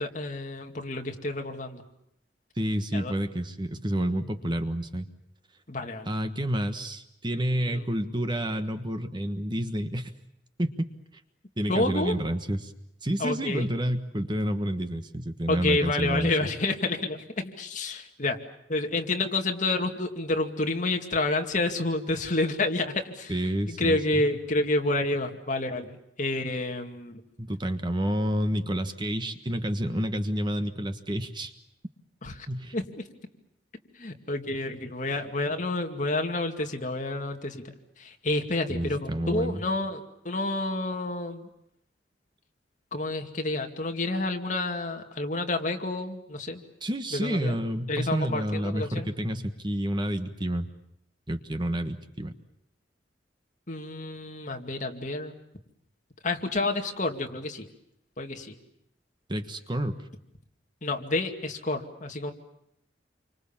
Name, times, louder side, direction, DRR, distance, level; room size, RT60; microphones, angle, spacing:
voice 1, 0.0-1.8 2.9-3.1 5.7-6.1 7.7-7.9 11.7-12.2 13.2-13.7 15.5-18.4 18.7-23.4 23.7-27.2 32.2-32.5 32.7-33.0 34.0-41.5 42.9-46.6 47.1-47.6 47.9-49.1 53.7-55.3 56.2-57.7 58.2-58.5 60.8-62.3, left 2 dB, 45° left, 4 dB, 2.3 m, -29 dB
voice 2, 2.6-5.1 6.0-10.1 10.6-10.7 11.6-12.7 13.0-16.3 23.3-24.2 27.4-31.5 32.5-32.7 38.7-39.6 46.8-50.7 51.3-52.3 59.3-60.0, equal, 25° right, 8 dB, 1.4 m, -29 dB
28.5 x 25.0 x 7.3 m, 0.78 s
head